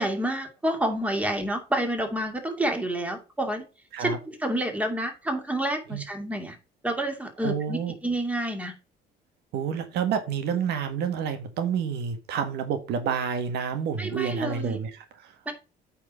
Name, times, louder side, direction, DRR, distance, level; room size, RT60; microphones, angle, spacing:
voice 1, 0.0-3.6 4.0-6.6 6.8-8.7 14.0-14.8 15.5-15.6, right 1 dB, 10° right, 4 dB, 2.4 m, -29 dB
voice 2, 7.4-7.9 9.5-15.5, right 7 dB, 80° right, 8 dB, 1.6 m, -29 dB
8.8 x 4.6 x 5.6 m, 0.30 s
cardioid pair, 110°, 17 cm